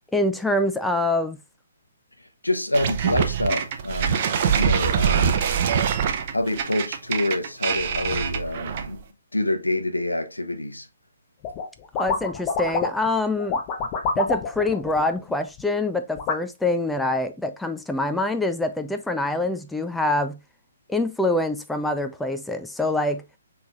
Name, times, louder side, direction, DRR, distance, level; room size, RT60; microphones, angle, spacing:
voice 1, 0.1-1.4 12.0-13.6 14.2-20.4 20.9-23.2, left 2 dB, 5° left, 0.4 m, -25 dB
voice 2, 2.2-5.4 6.3-9.0 9.3-10.9, left 1 dB, 90° left, 0.8 m, -27 dB
sound 1, 2.7-9.0, right 7 dB, 40° right, 0.7 m, -24 dB
sound 2, 11.4-11.7 11.9-13.1 13.4-15.6 16.2-16.3, left 4 dB, 30° left, 0.8 m, -27 dB
6.1 x 3.3 x 2.4 m
figure-of-eight pair, 135°, 0 cm